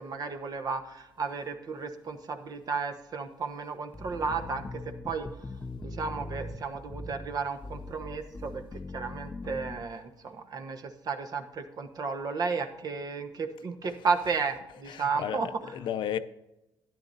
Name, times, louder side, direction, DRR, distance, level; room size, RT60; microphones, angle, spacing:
voice 1, 0.0-5.3 5.8-15.5, right 5 dB, 50° right, 1.2 m, -33 dB
sound 1, 3.9-9.9, left 2 dB, 20° left, 0.6 m, -41 dB
voice 2, 13.8-14.4 14.7-16.2, left 10 dB, 70° left, 0.6 m, -35 dB
12.5 x 10.0 x 2.7 m
cardioid pair, 105°, 8 cm